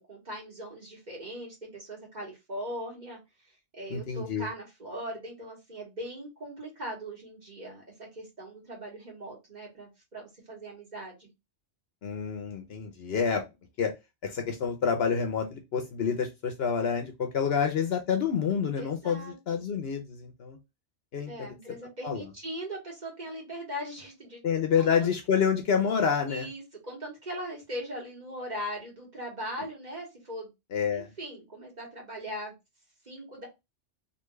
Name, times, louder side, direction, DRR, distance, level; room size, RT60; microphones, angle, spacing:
voice 1, 0.0-3.2 3.7-11.3 18.8-19.6 21.3-24.4 24.8-25.1 26.2-30.5 30.9-32.5 33.0-33.5, equal, 35° right, -2 dB, 1.7 m, -40 dB
voice 2, 3.9-4.5 12.0-13.4 13.8-13.9 14.2-20.6 21.1-21.5 22.0-22.2 24.4-26.5 30.7-31.1, left 6 dB, 65° left, 5 dB, 0.9 m, -28 dB
3.5 x 2.5 x 3.1 m, 0.22 s
omnidirectional pair, 1.2 m